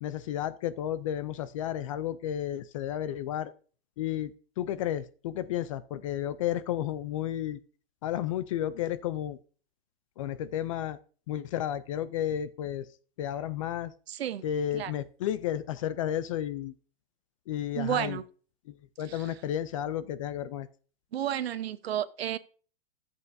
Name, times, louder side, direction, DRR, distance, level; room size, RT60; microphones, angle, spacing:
voice 1, 0.0-3.5 4.0-7.6 8.0-9.4 10.2-11.0 11.3-12.9 13.2-13.9 14.4-16.7 17.5-18.2 18.7-20.7, left 11 dB, 35° left, 15 dB, 0.4 m, -32 dB
voice 2, 14.1-14.4 14.7-14.9 17.7-18.2 19.1-19.3 21.1-22.4, right 11 dB, 85° right, 14 dB, 0.9 m, -31 dB
14.0 x 8.1 x 2.6 m, 0.40 s
hypercardioid pair, 160°, 30 cm